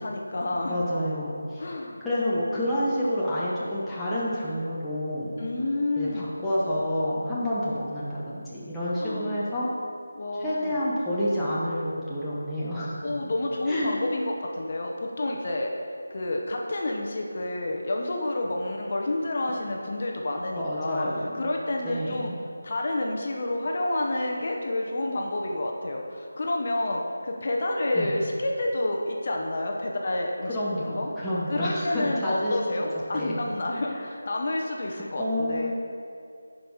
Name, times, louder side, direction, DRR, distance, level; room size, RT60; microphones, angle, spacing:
voice 1, 0.0-0.8 1.6-2.0 5.4-6.3 9.0-9.5 10.1-10.8 13.0-15.7 16.1-21.1 21.3-22.3 22.6-30.6 30.8-31.1 31.5-35.7, left 2 dB, 40° left, 1 dB, 0.9 m, -29 dB
voice 2, 0.7-1.6 2.0-5.4 6.0-9.7 10.4-13.2 13.7-13.9 20.6-21.5 21.8-22.4 27.9-28.1 30.4-32.6 32.9-33.4 33.9-34.0 34.9-35.7, equal, 5° left, -11 dB, 0.9 m, -29 dB
10.5 x 5.4 x 4.7 m, 2.4 s
figure-of-eight pair, 170°, 0 cm